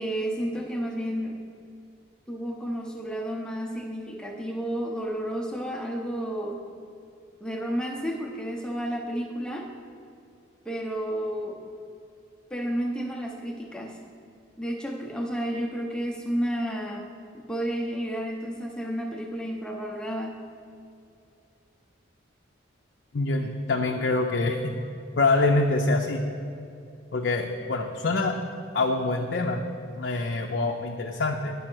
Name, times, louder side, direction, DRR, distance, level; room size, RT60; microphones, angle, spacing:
voice 1, 0.0-1.4 2.3-6.6 7.4-9.7 10.6-11.6 12.5-14.0 14.6-17.1 17.5-20.4, equal, 5° left, 0 dB, 0.8 m, -31 dB
voice 2, 23.1-24.7 25.2-26.2 27.1-28.3 28.7-29.6 29.9-31.5, left 3 dB, 55° left, 1 dB, 0.5 m, -25 dB
10.0 x 5.5 x 6.1 m, 2.5 s
head